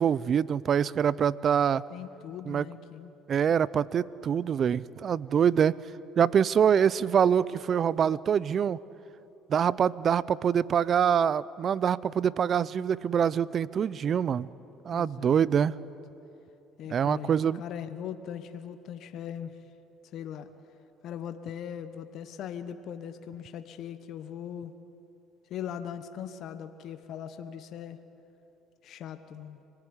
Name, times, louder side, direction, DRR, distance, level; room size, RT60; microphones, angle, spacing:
voice 1, 0.0-1.8 2.5-2.6 3.3-5.8 6.2-8.8 9.5-14.5 14.8-15.8 16.9-17.6, right 8 dB, 45° right, 20 dB, 0.6 m, -25 dB
voice 2, 1.9-3.1 14.9-15.9 16.8-19.6 20.1-20.5 21.0-24.7 25.5-28.0 28.8-29.6, left 9 dB, 60° left, 10 dB, 1.3 m, -40 dB
25.0 x 19.5 x 9.9 m, 2.9 s
supercardioid pair, 85°, 0 cm